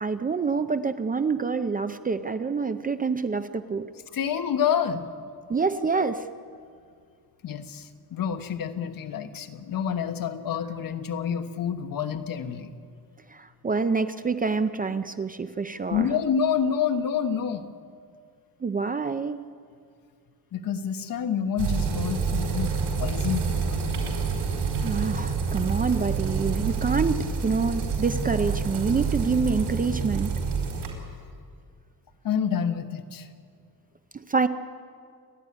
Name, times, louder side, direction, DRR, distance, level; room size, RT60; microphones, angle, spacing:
voice 1, 0.0-3.9 5.5-6.3 13.3-16.1 18.6-19.4 24.8-30.3 34.1-34.5, right 4 dB, 20° right, 10 dB, 0.5 m, -27 dB
voice 2, 4.1-5.0 7.4-12.7 15.9-17.7 20.5-23.9 32.2-33.3, left 7 dB, 55° left, 7 dB, 1.4 m, -28 dB
sound 1, 21.6-30.9, right 5 dB, 85° right, 4.7 m, -28 dB
29.5 x 12.0 x 9.8 m, 2.2 s
cardioid pair, 175°, 40 cm